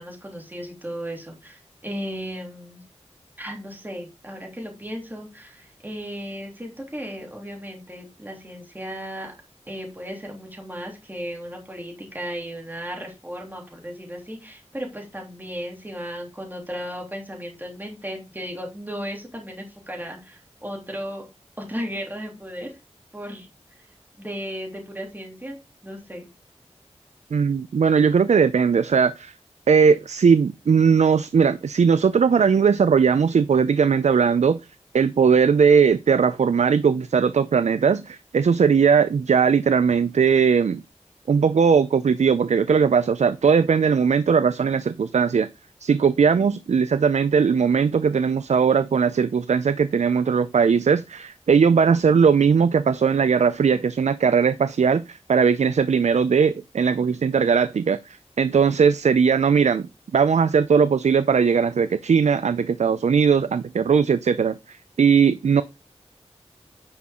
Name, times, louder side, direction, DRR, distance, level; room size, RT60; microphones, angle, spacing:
voice 1, 0.0-2.8 3.4-9.3 9.7-21.2 21.6-22.8 23.1-23.5 24.2-25.6 25.8-26.3, equal, 15° right, 3.0 m, -35 dB
voice 2, 27.3-29.3 29.7-34.6 34.9-40.8 41.3-45.5 45.8-65.6, right 6 dB, 80° right, 0.4 m, -19 dB
9.8 x 5.9 x 3.7 m
wide cardioid pair, 75°, 12 cm